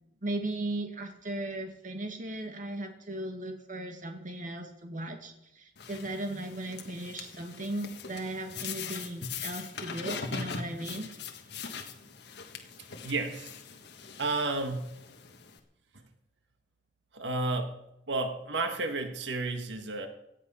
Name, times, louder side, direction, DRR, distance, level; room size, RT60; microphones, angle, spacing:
voice 1, 0.2-11.1, right 1 dB, 50° right, 4 dB, 2.0 m, -37 dB
sound 1, 5.8-15.6, left 5 dB, 70° left, 1.5 m, -41 dB
voice 2, 13.0-13.5 14.2-14.9 17.1-17.7 18.1-20.1, right 3 dB, 90° right, 6 dB, 1.7 m, -31 dB
17.5 x 11.5 x 5.6 m, 0.86 s
head